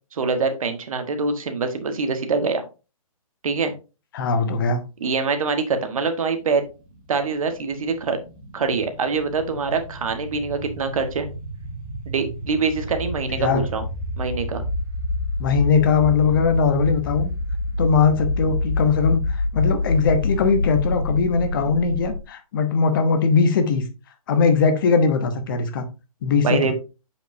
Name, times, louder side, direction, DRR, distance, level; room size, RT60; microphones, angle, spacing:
voice 1, 0.1-2.6 3.4-3.7 5.0-6.6 7.1-8.2 8.5-11.3 12.1-13.8 14.2-14.6 26.4-26.7, right 4 dB, 65° right, 1.4 m, -24 dB
voice 2, 4.1-4.8 13.4-13.7 15.4-17.3 17.8-23.8 24.3-25.8 26.2-26.7, left 5 dB, 35° left, 0.9 m, -20 dB
sound 1, 6.3-22.2, left 2 dB, 35° right, 1.8 m, -28 dB
7.4 x 5.2 x 2.7 m
hypercardioid pair, 160°, 19 cm